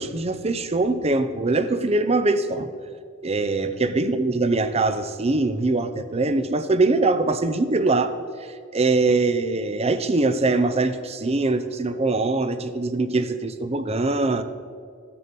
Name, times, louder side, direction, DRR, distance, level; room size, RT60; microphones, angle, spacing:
voice 1, 0.0-2.7 3.2-14.4, right 3 dB, 30° right, 10 dB, 0.6 m, -23 dB
14.5 x 6.8 x 5.3 m, 2.1 s
head